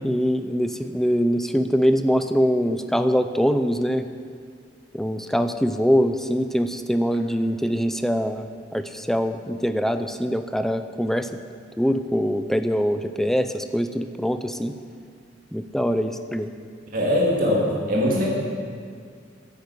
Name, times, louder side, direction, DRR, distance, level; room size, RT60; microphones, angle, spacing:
voice 1, 0.0-4.1 4.9-11.3 11.8-14.7 15.5-16.5, equal, ahead, 9 dB, 0.5 m, -23 dB
voice 2, 16.9-18.2, left 1 dB, 45° right, -4 dB, 2.4 m, -21 dB
10.5 x 10.0 x 8.2 m, 2.1 s
head